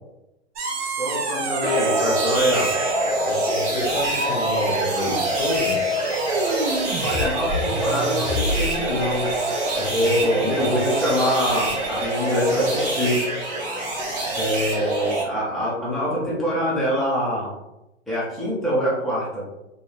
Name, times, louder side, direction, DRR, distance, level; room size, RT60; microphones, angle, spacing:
sound 1, 0.6-12.1, right 1 dB, 55° right, 0.8 m, -28 dB
voice 1, 1.0-2.7 7.0-9.3 9.7-13.2 14.3-17.5 18.1-19.5, equal, ahead, -8 dB, 0.3 m, -24 dB
sound 2, 1.6-15.2, right 2 dB, 20° right, 0.8 m, -26 dB
voice 2, 3.2-5.8 9.9-10.9, left 1 dB, 50° left, -5 dB, 0.8 m, -29 dB
3.0 x 2.6 x 2.3 m, 0.94 s
hypercardioid pair, 115°, 37 cm